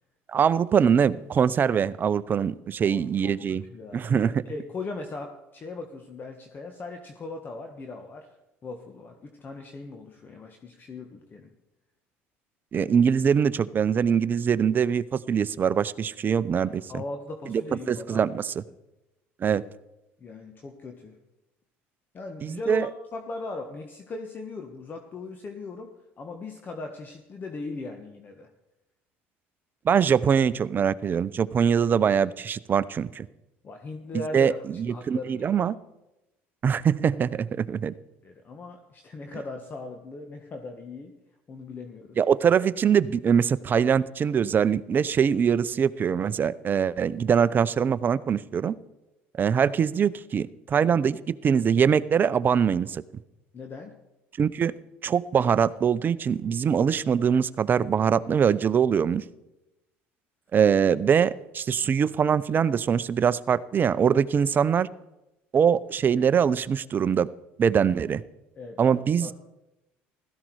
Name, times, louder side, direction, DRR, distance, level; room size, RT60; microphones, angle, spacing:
voice 1, 0.3-3.6 3.9-4.3 12.7-17.0 17.5-18.6 19.4-19.6 22.4-22.9 29.8-33.3 34.1-34.5 34.8-35.7 36.6-37.9 42.2-48.7 49.4-53.0 54.4-54.7 55.0-59.2 60.5-64.9 65.5-67.3 67.6-68.2 68.8-69.3, right 7 dB, 35° right, 16 dB, 0.6 m, -23 dB
voice 2, 2.8-3.4 3.7-8.3 8.6-11.5 16.7-18.3 20.2-21.2 22.1-25.9 26.2-28.5 33.6-34.6 34.8-35.6 37.7-37.8 38.2-41.1 41.5-42.2 53.5-53.9 68.5-69.3, left 3 dB, 35° left, 4 dB, 1.5 m, -39 dB
16.0 x 14.0 x 4.8 m, 0.95 s
supercardioid pair, 85°, 5 cm